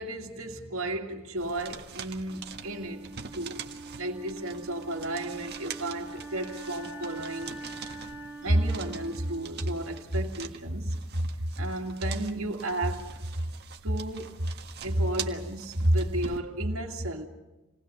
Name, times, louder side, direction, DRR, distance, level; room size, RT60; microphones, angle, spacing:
voice 1, 0.0-3.6 4.0-7.6 8.4-13.5 13.8-14.5 14.8-17.3, right 1 dB, 70° right, 2.3 m, -31 dB
sound 1, 1.4-16.4, right 7 dB, 50° right, 1.6 m, -44 dB
Wind instrument woodwind instrument, 2.3-10.3, right 2 dB, 10° right, 2.3 m, -44 dB
28.0 x 19.5 x 6.9 m
head